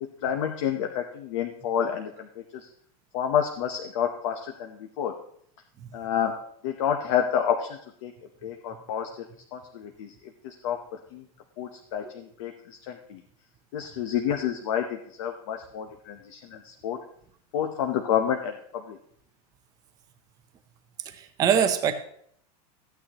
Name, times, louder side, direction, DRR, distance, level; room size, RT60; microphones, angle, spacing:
voice 1, 0.0-2.7 3.1-5.1 5.9-6.3 6.6-8.1 8.4-9.2 9.5-10.1 10.4-10.8 11.1-11.2 11.6-13.2 13.7-17.0 17.5-19.0, left 9 dB, 55° left, 4 dB, 0.9 m, -29 dB
voice 2, 21.1-21.9, right 8 dB, 20° right, 8 dB, 0.7 m, -23 dB
14.5 x 9.1 x 2.9 m, 0.65 s
supercardioid pair, 175°, 20 cm